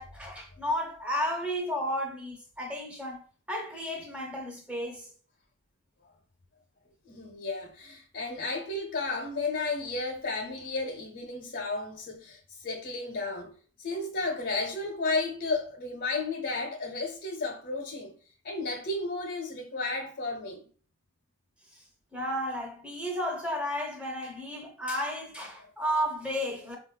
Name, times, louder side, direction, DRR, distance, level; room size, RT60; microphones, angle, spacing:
voice 1, 0.0-3.2 3.5-5.1 22.1-26.8, equal, 5° right, 0.6 m, -33 dB
voice 2, 7.0-13.5 13.8-18.1 18.4-20.6 25.6-25.7, left 3 dB, 50° left, 0.7 m, -33 dB
4.1 x 2.3 x 2.2 m
head